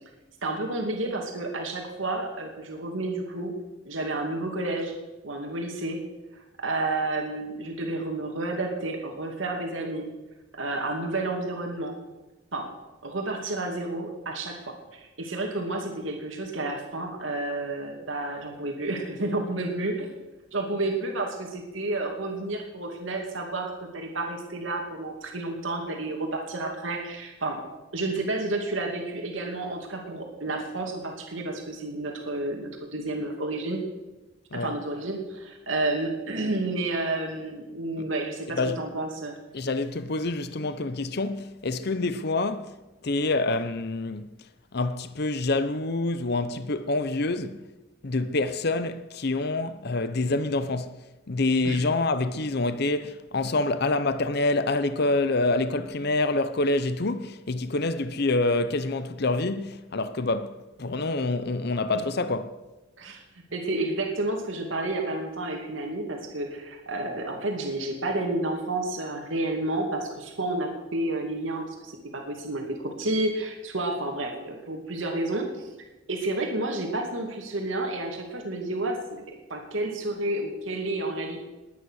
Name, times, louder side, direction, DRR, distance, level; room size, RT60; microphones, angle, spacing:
voice 1, 0.4-3.5 3.8-4.9 5.2-6.0 6.3-10.1 10.5-12.0 12.5-12.7 13.0-20.1 20.5-27.6 27.9-33.8 34.5-39.3 51.6-51.8 63.0-63.2 63.5-75.7 76.1-79.2 79.5-81.4, right 2 dB, 90° right, 2.5 m, -30 dB
voice 2, 38.5-38.8 39.5-42.8 43.0-44.3 44.7-47.6 48.0-51.0 51.3-62.6, left 2 dB, 55° left, 0.8 m, -27 dB
20.5 x 9.7 x 6.5 m
head